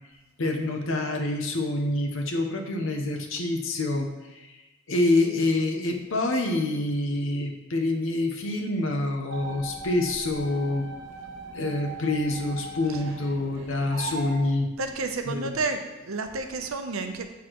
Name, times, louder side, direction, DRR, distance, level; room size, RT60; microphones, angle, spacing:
voice 1, 0.4-4.6 4.9-10.9 11.5-14.7 15.3-15.6, left 2 dB, 75° left, 4 dB, 0.8 m, -27 dB
sound 1, 9.3-14.4, right 2 dB, 55° right, 1.0 m, -39 dB
voice 2, 14.8-17.3, right 3 dB, 85° right, 6 dB, 0.7 m, -30 dB
7.1 x 6.3 x 3.0 m, 1.0 s
head